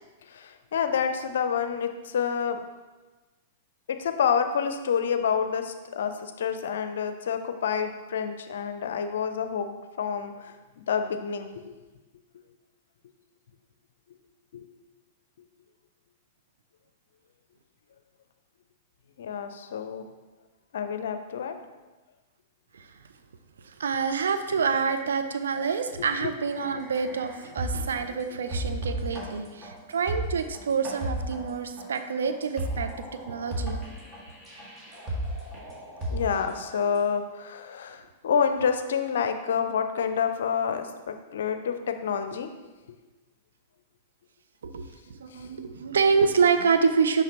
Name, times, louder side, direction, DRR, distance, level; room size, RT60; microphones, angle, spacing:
voice 1, 0.3-2.6 3.9-11.7 14.5-14.7 19.2-20.0 20.7-21.6 26.2-26.3 36.1-42.5 45.3-45.5, left 7 dB, 70° left, 8 dB, 0.5 m, -28 dB
voice 2, 23.7-33.8 44.6-44.9 45.2-47.2, right 5 dB, 75° right, 8 dB, 0.4 m, -27 dB
sound 1, 26.5-28.1 28.5-37.0, right 1 dB, 25° right, 1.9 m, -34 dB
5.7 x 5.7 x 2.9 m, 1.2 s
hypercardioid pair, 105°, 0 cm